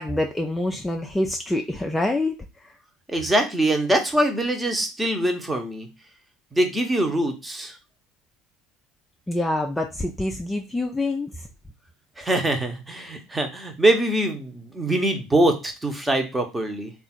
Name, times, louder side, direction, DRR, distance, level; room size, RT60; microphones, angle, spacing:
voice 1, 0.0-2.3 2.6-2.8 9.3-11.5 13.0-13.1, left 1 dB, 10° left, 2 dB, 0.5 m, -26 dB
voice 2, 3.1-5.9 6.5-7.8 12.2-16.9, right 1 dB, 10° right, 5 dB, 0.9 m, -23 dB
3.5 x 2.5 x 4.3 m, 0.28 s
figure-of-eight pair, 70°, 0 cm